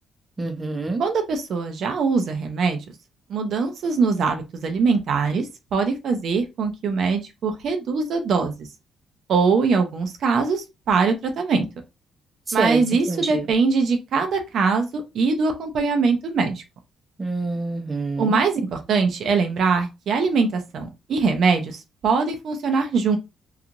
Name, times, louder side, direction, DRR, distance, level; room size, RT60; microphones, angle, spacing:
voice 1, 0.4-1.0 12.5-13.5 17.2-18.4, right 3 dB, 25° right, 0.6 m, -27 dB
voice 2, 1.0-2.8 3.3-5.5 5.7-8.5 9.3-11.6 12.5-16.6 18.2-18.6 18.9-23.2, right 4 dB, 65° right, 0.6 m, -22 dB
2.9 x 2.4 x 2.5 m
cardioid pair, 90°, 0 cm